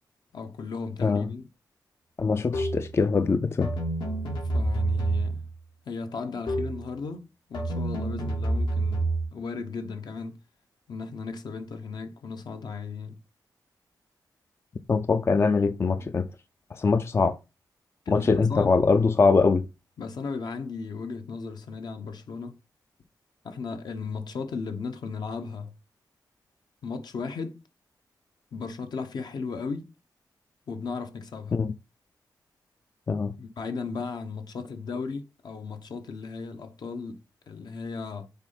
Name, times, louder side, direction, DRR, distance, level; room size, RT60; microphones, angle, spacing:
voice 1, 0.3-1.5 4.5-5.4 5.9-10.4 10.9-13.2 18.1-18.7 20.0-22.6 23.4-25.7 26.8-27.6 28.5-29.9 30.7-31.6 33.4-38.3, left 4 dB, 65° left, 1.0 m, -36 dB
voice 2, 2.2-3.7 14.9-16.3 16.7-17.4 18.1-19.7 31.5-31.7 33.1-33.3, left 4 dB, 35° left, 0.4 m, -22 dB
sound 1, 2.5-2.9 3.6-5.5 6.5-6.9 7.5-9.3, right 2 dB, 85° left, 2.8 m, -28 dB
7.1 x 4.4 x 4.0 m
wide cardioid pair, 150°, 8 cm